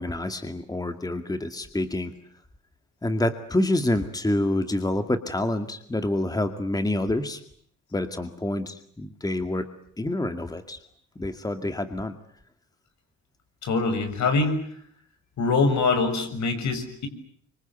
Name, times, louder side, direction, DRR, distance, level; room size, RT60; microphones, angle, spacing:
voice 1, 0.0-2.1 3.0-7.4 7.9-9.7 10.0-10.8 11.2-12.2, left 1 dB, 10° left, 8 dB, 2.2 m, -27 dB
voice 2, 13.6-14.6 15.4-17.1, left 3 dB, 65° left, 8 dB, 6.5 m, -24 dB
25.0 x 25.0 x 9.4 m, 0.65 s
cardioid pair, 90°, 30 cm